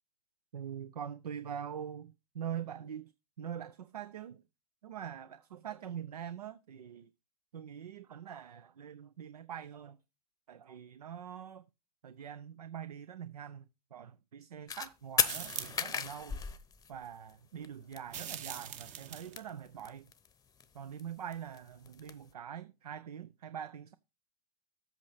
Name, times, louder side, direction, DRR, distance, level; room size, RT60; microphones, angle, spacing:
voice 1, 0.5-3.1 3.4-4.4 4.8-7.1 7.5-10.0 10.5-11.6 12.0-16.4 16.9-20.1 20.7-23.9, right 9 dB, 85° right, 0.5 m, -44 dB
sound 1, 14.7-14.9 15.2-17.3 17.6-17.7 17.9-18.0 18.2-18.8 19.0-20.3 20.6-22.1, left 6 dB, 20° left, 0.7 m, -34 dB
sound 2, 15.2-15.9 18.1-19.4, right 9 dB, 40° right, 0.9 m, -43 dB
8.1 x 5.9 x 4.7 m
hypercardioid pair, 95°, 19 cm